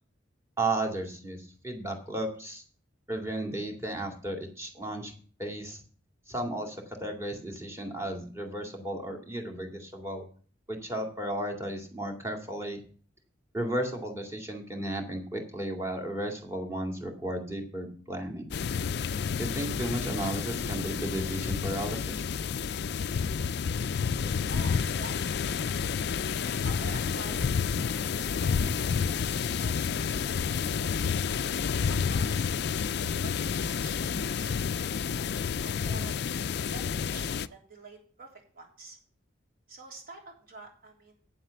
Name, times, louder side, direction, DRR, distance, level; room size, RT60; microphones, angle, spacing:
voice 1, 0.6-2.6 3.1-5.1 5.4-5.8 6.3-10.3 10.7-12.8 13.5-18.5 19.4-22.3, right 1 dB, 15° right, 2 dB, 2.2 m, -34 dB
sound 1, 18.5-37.5, left 6 dB, 55° left, 0.4 m, -30 dB
voice 2, 24.1-25.8 26.6-31.2 31.8-32.5 33.0-36.1 36.7-39.0 39.7-41.2, right 3 dB, 50° right, 0 dB, 3.3 m, -49 dB
9.0 x 7.6 x 6.9 m, 0.42 s
head